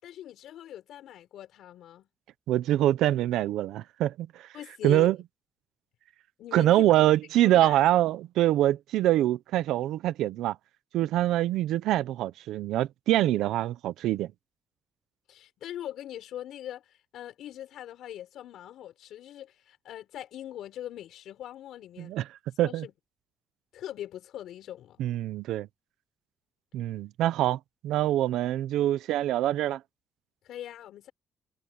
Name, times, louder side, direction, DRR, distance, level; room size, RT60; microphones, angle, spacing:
voice 1, 0.0-2.1 4.5-5.1 6.4-6.9 7.4-7.8 15.3-22.2 22.6-22.9 23.7-25.0 30.4-31.1, left 11 dB, 80° left, 4.8 m, -41 dB
voice 2, 2.5-4.3 4.8-5.2 6.5-10.6 10.9-14.3 22.0-22.2 22.6-22.8 25.0-25.7 26.7-29.8, right 13 dB, 85° right, 0.8 m, -24 dB
cardioid pair, 90°, 0 cm